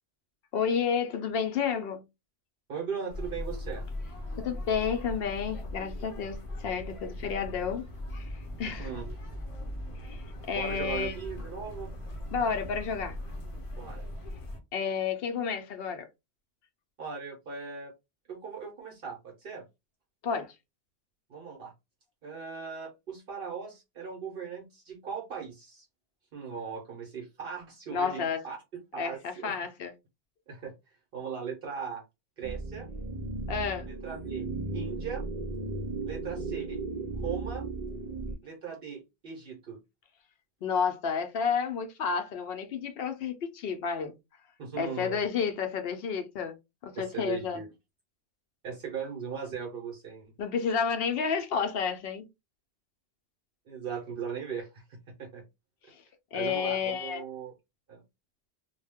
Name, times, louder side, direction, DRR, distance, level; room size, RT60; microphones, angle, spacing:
voice 1, 0.5-2.0 4.4-7.9 8.1-8.3 8.6-8.9 10.0-11.2 12.3-13.2 14.7-16.1 20.2-20.5 27.9-28.4 29.0-29.9 33.5-33.9 40.6-44.1 44.8-46.6 46.8-47.6 50.4-52.3 56.3-57.2, left 6 dB, 70° left, 0.8 m, -31 dB
voice 2, 2.7-3.9 8.6-9.1 10.5-11.9 13.7-14.1 17.0-17.9 18.3-19.6 21.3-21.7 22.2-25.9 26.3-28.6 28.9-29.5 30.5-30.7 31.1-32.0 32.4-32.9 33.9-34.5 34.7-35.2 36.1-36.8 37.2-37.7 38.4-39.8 44.6-45.2 46.9-47.7 48.6-50.3 53.7-55.4 56.3-57.5 57.9-58.0, right 6 dB, 65° right, 0.9 m, -38 dB
sound 1, 3.1-14.6, left 1 dB, 35° left, 0.7 m, -39 dB
sound 2, 32.4-38.4, right 3 dB, 50° right, 0.5 m, -35 dB
2.2 x 2.1 x 3.4 m
omnidirectional pair, 1.0 m